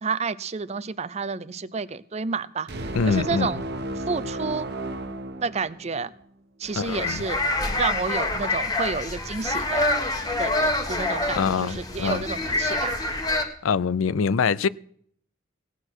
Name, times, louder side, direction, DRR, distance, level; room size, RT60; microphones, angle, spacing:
voice 1, 0.0-3.6 4.1-4.7 5.4-6.1 6.6-7.4 7.8-9.9 10.4-12.9, right 4 dB, 30° right, 0.5 m, -30 dB
sound 1, 2.7-6.2, right 1 dB, 55° right, 1.1 m, -33 dB
voice 2, 2.9-3.5 6.8-7.2 11.4-12.2 13.6-14.7, left 5 dB, 85° left, 0.5 m, -24 dB
sound 2, 6.7-13.4, left 2 dB, 20° left, 1.5 m, -26 dB
17.5 x 9.9 x 6.3 m
head